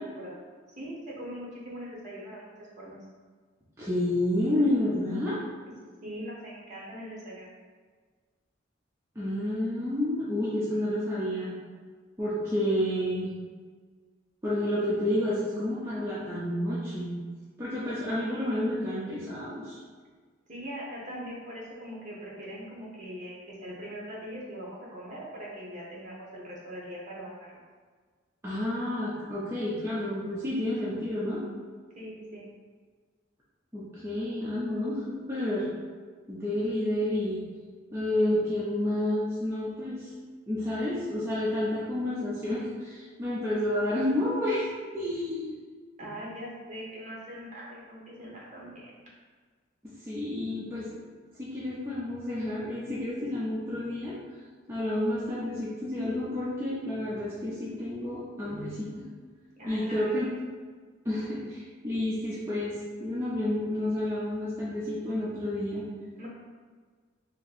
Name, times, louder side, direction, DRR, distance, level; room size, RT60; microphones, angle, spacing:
voice 1, 0.8-2.5 2.8-3.0 6.0-7.5 20.5-27.6 32.0-32.4 46.0-49.0 59.6-60.0 66.2-66.3, equal, 40° right, -5 dB, 1.0 m, -41 dB
voice 2, 3.8-5.4 9.2-11.6 12.2-13.3 14.4-17.2 17.6-19.8 28.4-31.4 33.7-35.7 36.3-37.4 37.9-40.1 40.5-44.6 44.9-45.6 50.0-51.0 51.4-54.1 54.7-59.1 59.7-60.3 61.0-62.7 63.0-65.8, left 1 dB, 10° right, -9 dB, 0.5 m, -30 dB
2.9 x 2.6 x 4.0 m, 1.5 s
head